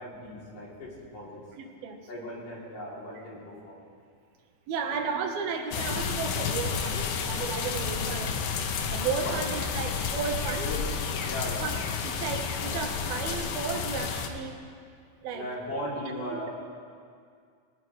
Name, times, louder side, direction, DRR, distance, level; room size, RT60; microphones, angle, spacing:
voice 1, 0.0-1.4 2.1-3.8 4.9-5.1 9.2-9.3 10.6-10.9 11.2-11.7 12.6-12.8 15.3-16.5, left 1 dB, 60° left, -5 dB, 4.8 m, -38 dB
voice 2, 1.6-2.4 4.7-8.3 8.9-10.8 11.6-11.8 12.0-14.5 15.2-15.4 16.3-16.5, right 6 dB, 75° right, 3 dB, 3.2 m, -34 dB
sound 1, 5.7-14.3, left 6 dB, 80° left, 2.9 m, -31 dB
23.0 x 17.5 x 3.3 m, 2.2 s
omnidirectional pair, 4.4 m